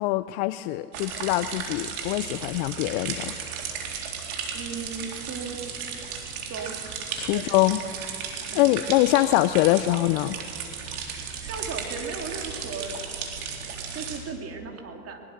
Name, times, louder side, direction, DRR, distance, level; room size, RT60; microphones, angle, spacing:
voice 1, 0.0-3.4 7.2-7.8 8.5-10.4, left 17 dB, 40° left, 14 dB, 0.5 m, -23 dB
sound 1, 0.9-14.2, right 6 dB, 65° right, 3.9 m, -35 dB
voice 2, 4.5-5.6 6.5-6.8 7.3-7.5 8.5-8.7 11.4-12.9 13.9-15.2, right 5 dB, 30° right, 4 dB, 2.9 m, -36 dB
21.5 x 21.0 x 6.6 m, 2.4 s
hypercardioid pair, 110°, 47 cm